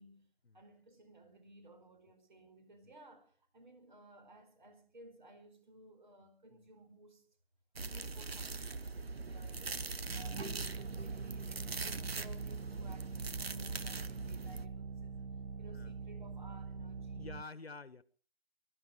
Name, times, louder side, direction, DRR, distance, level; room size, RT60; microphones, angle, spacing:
voice 1, 0.5-7.3 7.9-9.8 10.1-15.3 15.6-17.3, right 1 dB, 50° right, 4.5 m, -58 dB
sound 1, 7.8-14.7, right 4 dB, 70° right, 1.1 m, -42 dB
voice 2, 9.8-10.1 11.7-11.8 15.7-15.9 16.9-18.0, left 3 dB, 75° left, 1.4 m, -50 dB
sound 2, 10.1-17.4, right 5 dB, 85° right, 0.7 m, -44 dB
22.5 x 12.5 x 5.0 m
figure-of-eight pair, 160°, 31 cm